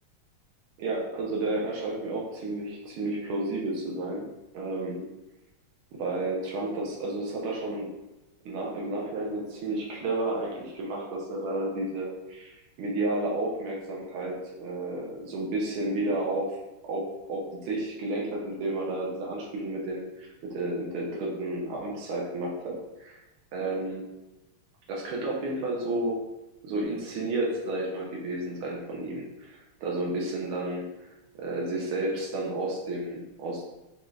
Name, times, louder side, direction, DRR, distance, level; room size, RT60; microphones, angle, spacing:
voice 1, 0.8-4.3 4.5-5.1 5.9-7.9 8.4-16.6 16.9-23.2 23.5-24.0 24.9-26.2 26.6-31.1 31.4-33.7, right 2 dB, 80° right, -2 dB, 1.6 m, -31 dB
6.2 x 2.4 x 3.2 m, 0.99 s
omnidirectional pair, 2.3 m